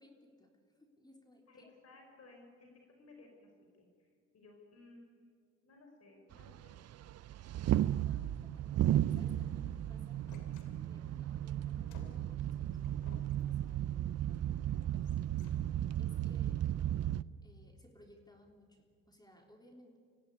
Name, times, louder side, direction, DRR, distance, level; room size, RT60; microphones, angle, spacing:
voice 1, 0.0-1.8 8.0-10.3 10.8-14.9 16.0-16.7 17.4-20.0, left 1 dB, 15° left, 3 dB, 3.5 m, -62 dB
voice 2, 1.5-2.7 3.0-3.5 3.8-4.1 4.3-6.7 10.5-10.8, left 2 dB, 55° left, 2 dB, 5.0 m, -59 dB
sound 1, 6.3-17.2, right 12 dB, 55° right, 0.6 m, -34 dB
sound 2, 10.3-11.2 11.9-14.2 14.9-16.0, left 5 dB, 85° left, 2.8 m, -59 dB
24.5 x 16.0 x 9.8 m, 2.1 s
cardioid pair, 90°, 30 cm